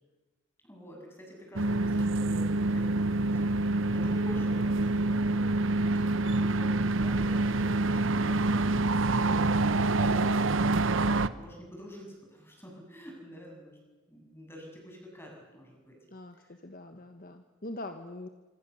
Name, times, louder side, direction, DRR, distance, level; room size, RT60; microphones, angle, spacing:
voice 1, 0.6-13.8 14.1-16.0 16.3-16.5, equal, 10° left, 0 dB, 7.7 m, -47 dB
sound 1, 1.6-11.3, right 2 dB, 80° right, 0.9 m, -26 dB
voice 2, 16.1-18.3, left 2 dB, 45° left, 7 dB, 1.3 m, -43 dB
26.0 x 25.5 x 7.1 m, 1.2 s
head